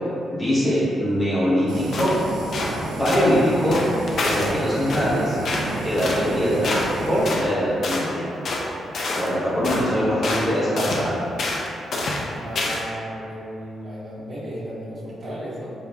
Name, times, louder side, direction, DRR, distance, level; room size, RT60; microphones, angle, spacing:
voice 1, 0.3-2.1 3.0-3.8 4.2-5.4 5.8-6.8 7.1-8.3 9.2-11.2, equal, 20° left, -9 dB, 0.9 m, -22 dB
Fire, 1.7-7.3, right 2 dB, 80° right, 0.3 m, -31 dB
sound 1, 1.9-2.2 2.5-2.8 3.0-3.3 3.7-4.5 4.9-5.1 5.4-5.7 6.0-6.2 6.6-6.9 7.3-7.5 7.8-8.1 8.4-8.7 8.9-9.3 9.6-9.9 10.2-10.5 10.8-11.0 11.4-11.7 11.9-12.2 12.6-12.9, left 2 dB, 55° left, 0.4 m, -27 dB
voice 2, 12.3-15.7, equal, 50° right, -12 dB, 1.1 m, -34 dB
5.1 x 2.3 x 2.2 m, 2.6 s
cardioid pair, 135°, 0 cm